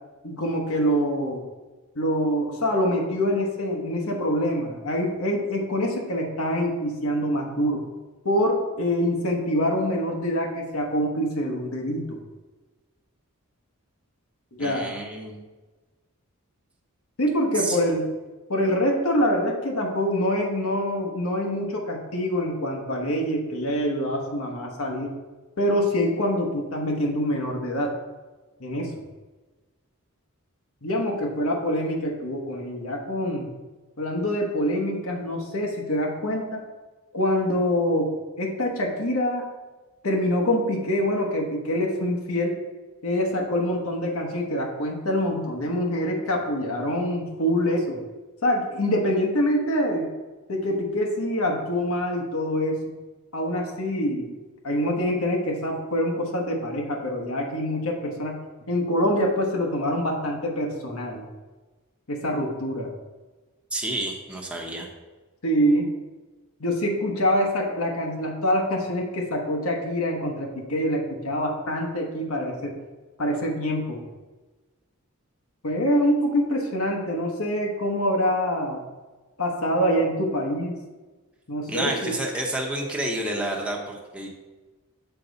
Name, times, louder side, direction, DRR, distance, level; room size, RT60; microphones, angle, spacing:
voice 1, 0.2-1.4 1.9-7.8 8.2-12.2 14.6-14.9 17.2-18.1 18.5-25.1 25.6-27.9 28.6-28.9 30.8-33.5 34.0-36.6 37.1-38.1 38.4-39.5 40.0-42.5 43.0-48.0 48.4-50.1 50.5-53.0 53.3-54.3 54.6-58.4 58.7-61.2 62.1-62.9 65.4-65.9 66.6-72.7 73.2-74.0 75.6-78.8 79.4-80.8 81.5-82.2, equal, 80° left, 0 dB, 1.1 m, -25 dB
voice 2, 14.6-15.4 17.5-17.8 63.7-64.9 81.7-84.3, right 1 dB, 5° right, -1 dB, 0.8 m, -29 dB
7.0 x 4.6 x 4.0 m, 1.2 s
head